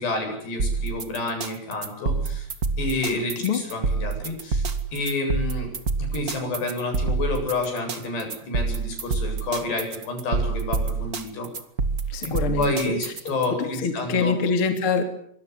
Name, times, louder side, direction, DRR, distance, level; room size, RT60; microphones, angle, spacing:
voice 1, 0.0-2.5 2.8-5.7 6.1-11.5 12.2-12.3 12.6-14.3, left 2 dB, 75° left, 4 dB, 10.0 m, -29 dB
sound 1, 0.6-13.5, right 4 dB, 40° right, 1.3 m, -27 dB
voice 2, 3.1-3.6 12.1-13.3 13.6-15.0, left 5 dB, 35° left, 7 dB, 3.3 m, -25 dB
25.5 x 24.0 x 8.4 m, 0.68 s
omnidirectional pair, 4.8 m